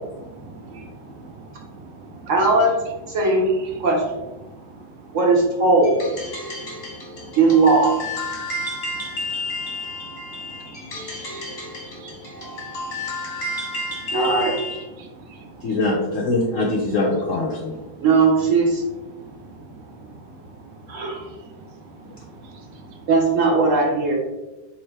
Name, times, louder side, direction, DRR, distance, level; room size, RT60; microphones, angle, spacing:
voice 1, 0.2-2.2 3.3-3.4 5.0-5.1 6.4-7.3 8.6-9.5 10.2-10.3 10.6-11.7 12.0-13.2 15.0-15.8 17.7-17.8 19.2-19.6 20.3-20.4 21.1-21.4 22.2-23.0, right 3 dB, 75° right, 2 dB, 1.4 m, -43 dB
voice 2, 2.3-2.8 3.1-3.5 3.8-4.0 5.1-6.0 7.4-7.9 14.1-14.5 18.0-18.8 20.9-21.3 23.1-24.2, right 3 dB, 55° right, 0 dB, 1.0 m, -18 dB
sound 1, 5.8-14.9, left 2 dB, 40° left, 1.4 m, -31 dB
voice 3, 15.6-17.7, left 2 dB, 65° left, -2 dB, 0.8 m, -22 dB
4.4 x 3.5 x 3.2 m, 1.1 s
omnidirectional pair, 2.0 m